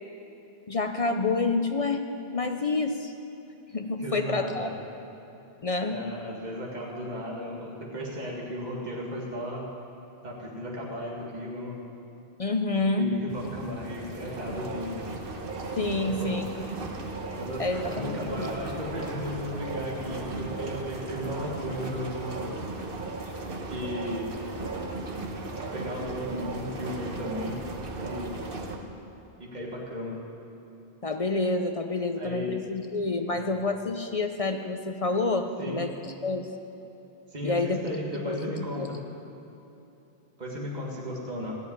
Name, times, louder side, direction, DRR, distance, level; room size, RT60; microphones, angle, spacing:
voice 1, 0.7-2.0 2.3-3.1 3.7-4.7 5.6-6.0 12.4-13.1 15.8-16.4 17.6-18.5 31.0-36.5 37.4-38.9, left 3 dB, 40° left, 6 dB, 0.6 m, -28 dB
voice 2, 4.0-4.7 5.9-9.6 10.2-11.8 12.9-15.0 16.0-16.7 17.4-22.5 23.7-24.4 25.7-27.6 28.0-28.3 29.4-30.2 32.2-32.6 33.3-33.5 35.6-35.8 37.3-39.0 40.4-41.5, equal, 40° right, -4 dB, 2.0 m, -35 dB
sound 1, 13.3-28.8, right 2 dB, 60° right, 1.2 m, -36 dB
13.5 x 6.8 x 9.5 m, 3.0 s
omnidirectional pair, 1.1 m